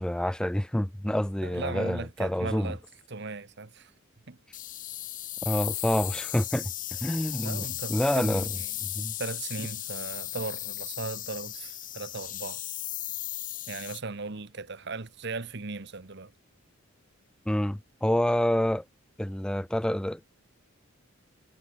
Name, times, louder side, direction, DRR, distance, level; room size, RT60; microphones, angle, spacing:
voice 1, 0.0-2.7 5.5-6.7 7.0-7.6 7.9-8.5 9.0-9.1 17.5-18.8 19.2-20.2, left 1 dB, 5° left, 0.3 m, -27 dB
voice 2, 1.4-2.8 3.1-3.9 4.3-4.4 7.4-8.7 9.2-12.6 13.7-16.3, right 3 dB, 55° right, 1.1 m, -37 dB
sound 1, 4.5-14.0, left 14 dB, 40° left, 1.2 m, -36 dB
head